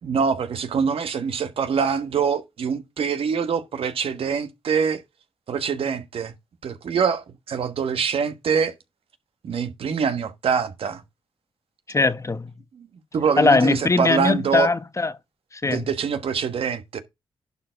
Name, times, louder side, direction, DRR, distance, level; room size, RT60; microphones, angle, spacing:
voice 1, 0.0-5.0 5.5-6.3 6.6-8.7 9.4-11.0 12.7-12.9 13.1-14.7 15.6-17.0, right 6 dB, 70° right, 1.4 m, -24 dB
voice 2, 11.9-12.5 13.4-15.1 15.5-15.8, left 3 dB, 30° left, 1.0 m, -20 dB
11.0 x 4.5 x 4.6 m
supercardioid pair, 50°, 10 cm